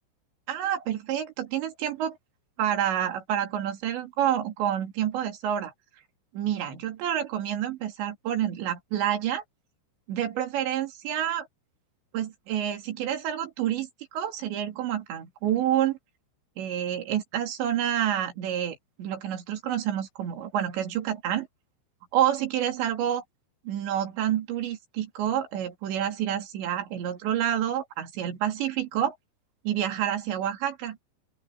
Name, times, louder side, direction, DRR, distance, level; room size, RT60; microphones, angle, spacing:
voice 1, 0.5-2.2 2.6-5.7 6.3-9.4 10.1-11.5 12.1-13.9 14.1-16.0 16.6-21.5 22.1-23.2 23.7-29.2 29.6-31.0, right 10 dB, 70° right, 4.7 m, -28 dB
open air
omnidirectional pair, 5.6 m